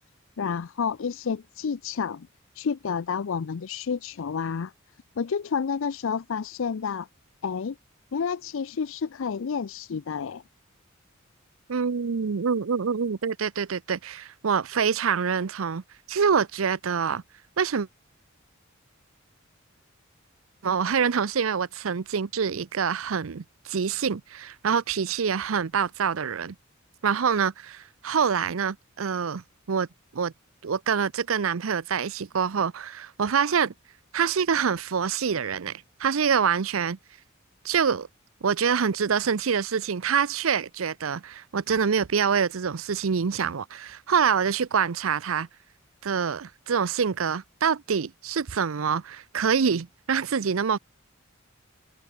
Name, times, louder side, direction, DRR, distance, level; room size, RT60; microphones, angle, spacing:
voice 1, 0.4-2.3 2.5-4.7 5.2-7.1 7.4-7.8 8.1-10.4, left 6 dB, 70° left, 0.5 m, -30 dB
voice 2, 11.7-15.8 16.1-17.2 17.6-17.9 20.6-26.5 27.0-29.9 30.1-30.3 30.6-33.7 34.1-37.0 37.6-38.1 38.4-45.5 46.0-50.8, right 6 dB, 75° right, 0.6 m, -26 dB
head